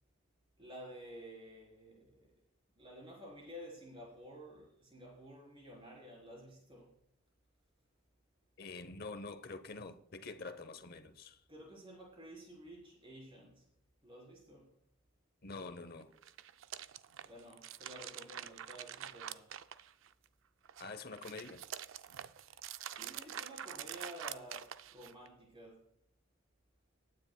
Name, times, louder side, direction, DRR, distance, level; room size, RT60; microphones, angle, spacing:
voice 1, 0.6-2.3 2.8-6.9 11.5-13.6 14.0-14.7 17.2-19.5 22.9-25.8, equal, 25° right, 3.9 m, -52 dB
voice 2, 8.6-11.4 15.4-16.1 20.8-21.6, left 3 dB, 45° left, 0.8 m, -46 dB
sound 1, 16.1-20.3 20.6-25.3, right 10 dB, 70° right, 0.4 m, -46 dB
20.0 x 9.6 x 2.3 m
head